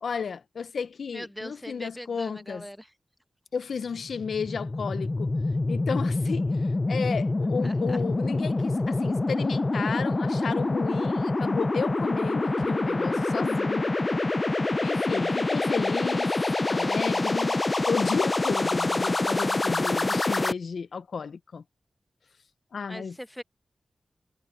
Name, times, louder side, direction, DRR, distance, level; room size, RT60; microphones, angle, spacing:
voice 1, 0.0-2.6 3.5-5.3 5.7-13.9 14.8-16.3 16.7-17.6 17.9-21.6 22.7-23.1, left 5 dB, 85° left, 0.7 m, -33 dB
voice 2, 1.1-2.9 7.6-8.0 22.9-23.4, equal, ahead, 0.9 m, -41 dB
sound 1, 4.0-20.5, left 2 dB, 35° left, 0.4 m, -26 dB
cardioid pair, 55°, 0 cm